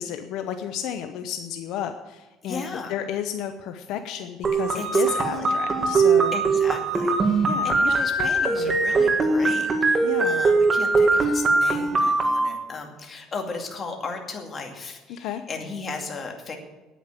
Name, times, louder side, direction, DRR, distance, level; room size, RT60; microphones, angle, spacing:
voice 1, 0.0-6.4 7.5-8.8 10.0-10.4 15.1-15.4, left 9 dB, 65° left, 7 dB, 0.8 m, -32 dB
voice 2, 2.4-2.9 4.7-5.6 6.3-16.6, left 4 dB, 25° left, 2 dB, 2.3 m, -36 dB
sound 1, 4.4-12.4, right 3 dB, 25° right, 1.7 m, -21 dB
9.4 x 9.3 x 8.9 m, 1.1 s
cardioid pair, 140°, 0 cm